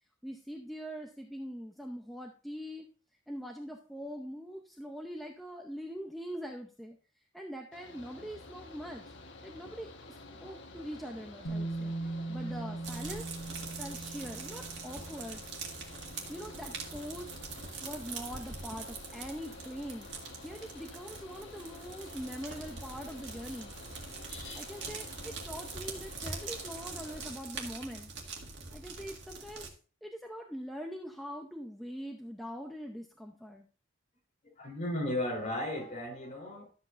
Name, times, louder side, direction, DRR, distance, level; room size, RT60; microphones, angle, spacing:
voice 1, 0.2-2.9 3.3-7.0 7.3-9.1 9.4-13.3 13.8-15.4 16.3-17.3 17.8-20.1 20.4-23.7 24.5-28.1 28.7-29.7 30.0-33.7, equal, ahead, 0.7 m, -43 dB
Mechanical fan, 7.7-27.3, left 2 dB, 70° left, 1.2 m, -50 dB
Bass guitar, 11.4-17.5, right 2 dB, 90° left, 1.7 m, -41 dB
sound 1, 12.8-29.7, right 4 dB, 65° right, 1.9 m, -44 dB
voice 2, 34.6-36.7, left 1 dB, 35° left, 3.5 m, -35 dB
12.5 x 7.8 x 2.6 m
head